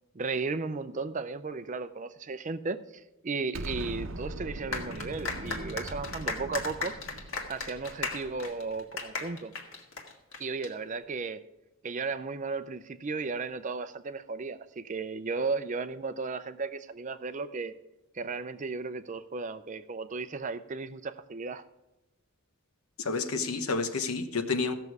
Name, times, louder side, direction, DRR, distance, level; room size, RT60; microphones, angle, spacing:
voice 1, 0.1-7.2 7.5-9.5 10.4-11.4 11.8-17.7 18.1-21.6, right 4 dB, 35° right, 12 dB, 0.5 m, -35 dB
Explosion, 3.5-8.7, right 1 dB, 60° right, 0.8 m, -41 dB
sound 1, 4.7-10.7, left 4 dB, 60° left, 1.7 m, -36 dB
voice 2, 23.0-24.7, left 4 dB, 80° left, 8 dB, 1.0 m, -30 dB
15.5 x 6.7 x 4.7 m, 0.97 s
head